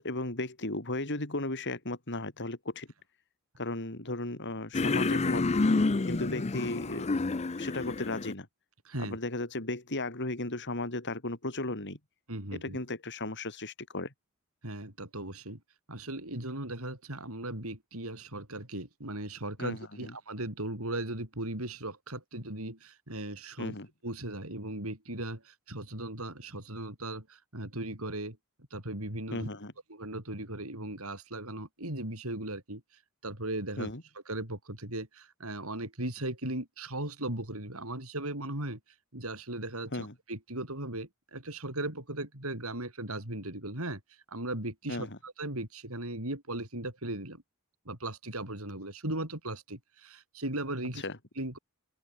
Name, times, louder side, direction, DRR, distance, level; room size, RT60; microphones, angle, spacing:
voice 1, 0.0-2.9 3.6-5.5 6.0-7.1 7.6-8.5 9.0-12.0 12.5-14.1 19.6-20.1 23.6-23.9 29.3-29.7 33.8-34.0 39.9-40.1 44.9-45.2 50.9-51.2, left 2 dB, 55° left, 4.6 m, -35 dB
sound 1, 4.7-8.3, left 3 dB, 30° left, 0.5 m, -29 dB
voice 2, 8.8-9.2 12.3-12.8 14.6-15.6 15.9-23.7 24.0-28.4 28.7-29.5 29.9-32.8 33.2-33.9 34.3-38.8 39.1-44.0 44.3-47.4 47.9-51.0 51.4-51.6, right 1 dB, 70° right, 7.5 m, -37 dB
open air
head